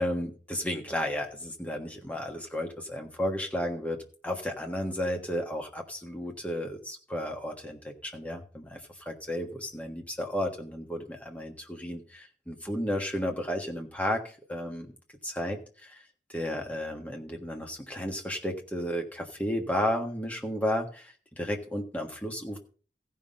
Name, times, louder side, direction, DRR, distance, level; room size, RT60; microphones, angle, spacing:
voice 1, 0.0-4.0 4.2-8.8 9.0-14.2 14.5-14.9 15.2-16.0 16.3-22.6, equal, 10° left, 2 dB, 1.4 m, -33 dB
15.0 x 5.7 x 5.2 m, 0.40 s
head